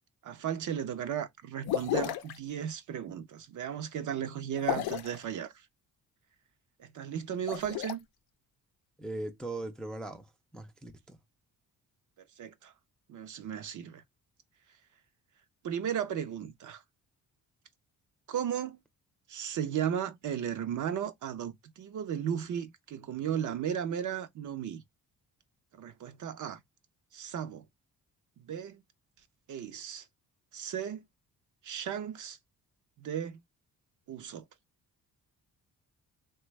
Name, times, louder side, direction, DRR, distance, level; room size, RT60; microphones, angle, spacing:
voice 1, 0.2-5.5 6.8-8.0 12.4-12.7 13.1-14.0 15.6-16.8 18.3-18.8 19.3-24.8 25.8-26.6 27.1-27.6 28.5-28.8 29.5-30.0 30.5-31.0 31.6-32.4 33.0-33.4 34.1-34.4, right 9 dB, 55° right, 0.5 m, -35 dB
sound 1, 1.7-2.4 4.6-5.2 7.3-7.9, left 12 dB, 90° left, 0.5 m, -32 dB
voice 2, 9.0-10.3 10.5-11.2, right 2 dB, ahead, 0.3 m, -39 dB
3.3 x 2.2 x 3.0 m
cardioid pair, 130°, 36 cm